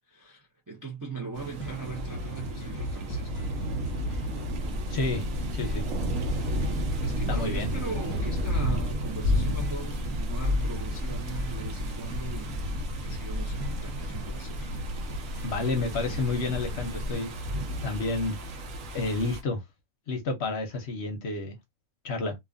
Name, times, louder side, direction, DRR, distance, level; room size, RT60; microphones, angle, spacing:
voice 1, 0.1-3.5 7.0-14.8, right 4 dB, 25° right, 0.4 m, -40 dB
sound 1, 1.3-19.4, equal, 70° right, 1.1 m, -32 dB
sound 2, 1.6-17.6, equal, 20° left, 0.6 m, -42 dB
sound 3, 4.5-17.2, left 1 dB, 90° right, 1.4 m, -36 dB
voice 2, 4.9-5.9 7.3-7.7 15.4-17.3 17.8-18.4 18.9-19.6 20.1-21.6 22.0-22.4, left 3 dB, 60° left, 0.8 m, -30 dB
2.6 x 2.4 x 2.4 m
omnidirectional pair, 1.5 m